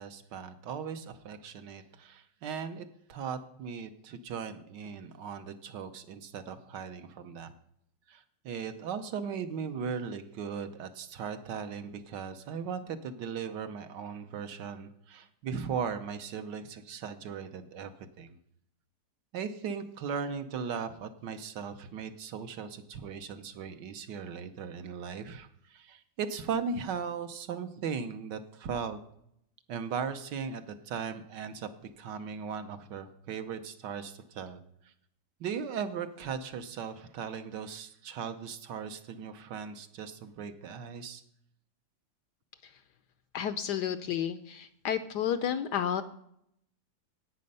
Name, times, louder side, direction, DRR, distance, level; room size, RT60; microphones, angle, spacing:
voice 1, 0.0-7.5 8.1-17.9 18.2-18.3 19.3-29.0 29.7-31.7 32.0-34.6 35.4-41.2, right 6 dB, 70° right, 9 dB, 1.3 m, -38 dB
voice 2, 43.3-46.0, left 9 dB, 75° left, 11 dB, 1.0 m, -31 dB
10.5 x 8.7 x 5.4 m, 0.74 s
omnidirectional pair, 2.1 m